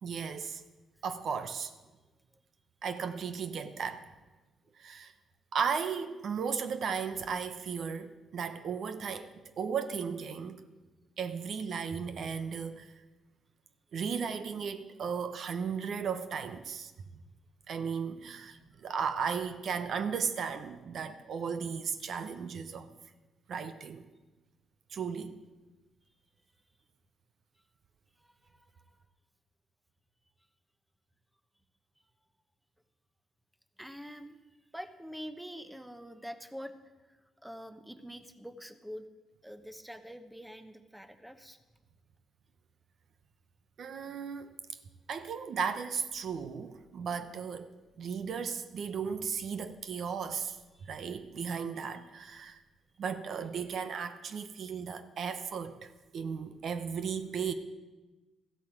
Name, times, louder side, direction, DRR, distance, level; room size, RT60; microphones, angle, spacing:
voice 1, 0.0-0.6 1.0-1.7 2.8-4.1 4.8-5.1 5.5-10.6 11.2-12.9 13.9-16.9 17.7-22.9 23.5-24.0 24.9-25.4 43.8-44.5 45.1-47.7 48.0-52.6 53.0-57.5, right 6 dB, 60° right, 0.9 m, -35 dB
voice 2, 28.2-29.0 33.8-36.7 37.0-39.1 39.4-41.6 50.7-50.9, equal, 5° right, 1.0 m, -46 dB
14.5 x 8.3 x 7.4 m
cardioid pair, 90°, 0 cm